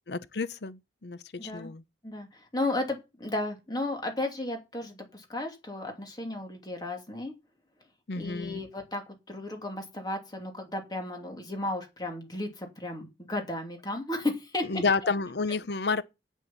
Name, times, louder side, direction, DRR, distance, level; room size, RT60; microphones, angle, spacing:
voice 1, 0.1-1.8 8.1-8.6 14.7-16.0, left 4 dB, 70° left, 0.8 m, -30 dB
voice 2, 1.4-1.7 2.0-7.3 8.2-14.8, left 2 dB, 25° left, 2.8 m, -34 dB
8.7 x 8.0 x 7.2 m
head